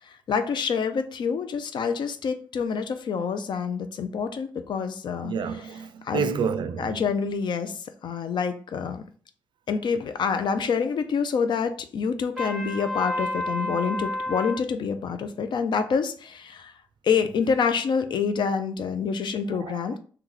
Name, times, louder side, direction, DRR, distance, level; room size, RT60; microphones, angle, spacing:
voice 1, 0.3-5.3 6.0-6.2 6.8-9.0 9.7-16.7 17.0-20.0, left 6 dB, 70° left, 0.4 m, -27 dB
voice 2, 5.2-7.0 19.6-19.9, right 6 dB, 75° right, 0.3 m, -29 dB
Trumpet, 12.4-14.6, left 1 dB, ahead, 1.0 m, -30 dB
3.0 x 2.2 x 3.7 m
cardioid pair, 85°, 8 cm